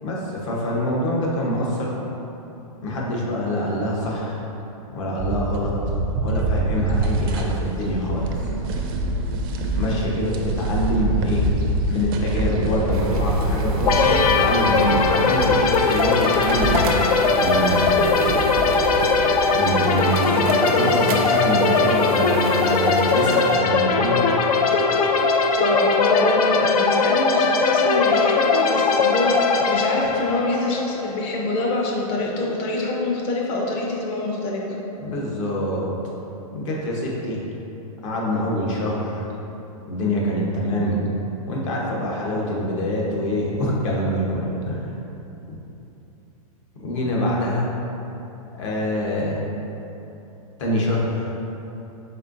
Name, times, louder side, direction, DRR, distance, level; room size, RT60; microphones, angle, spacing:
voice 1, 0.0-1.9 2.8-4.4 4.9-5.7 6.2-8.3 9.7-11.5 11.9-16.8 17.3-18.4 19.5-24.3 35.0-35.9 36.5-37.4 38.0-39.2 39.9-41.2 41.5-44.9 45.5-45.6 46.8-47.7 48.6-49.3 50.6-51.3, equal, 55° left, -4 dB, 1.0 m, -25 dB
sound 1, 5.2-19.4, right 1 dB, 40° right, 0.4 m, -26 dB
sound 2, 12.9-23.6, right 1 dB, 90° right, 0.6 m, -30 dB
sound 3, 13.9-31.5, left 4 dB, 90° left, 0.4 m, -20 dB
voice 2, 25.6-34.6, left 2 dB, 30° left, -2 dB, 0.6 m, -25 dB
4.3 x 3.7 x 2.6 m, 3.0 s
hypercardioid pair, 150°, 19 cm